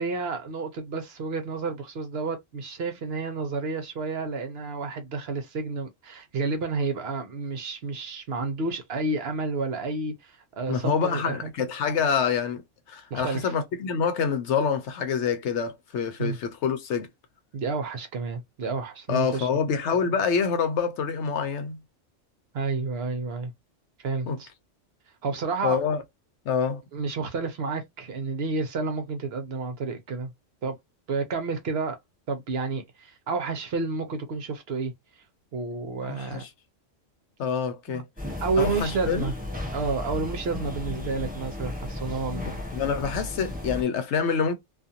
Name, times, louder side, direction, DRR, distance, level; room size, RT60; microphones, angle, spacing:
voice 1, 0.0-11.5 13.1-13.5 16.2-16.4 17.5-19.6 22.5-23.5 24.0-24.5 25.2-25.8 26.9-30.3 30.6-30.8 31.1-32.0 32.3-34.9 35.5-36.4 37.9-38.0 38.4-39.3 39.7-42.5, right 4 dB, 60° right, 0.9 m, -30 dB
voice 2, 10.7-17.1 19.1-21.8 24.3-24.4 25.6-26.0 26.5-26.8 36.0-36.5 37.4-38.0 38.6-39.3 42.7-44.5, left 6 dB, 70° left, 0.9 m, -26 dB
sound 1, 38.2-43.8, left 1 dB, 10° right, 0.6 m, -34 dB
2.5 x 2.4 x 2.7 m
omnidirectional pair, 1.3 m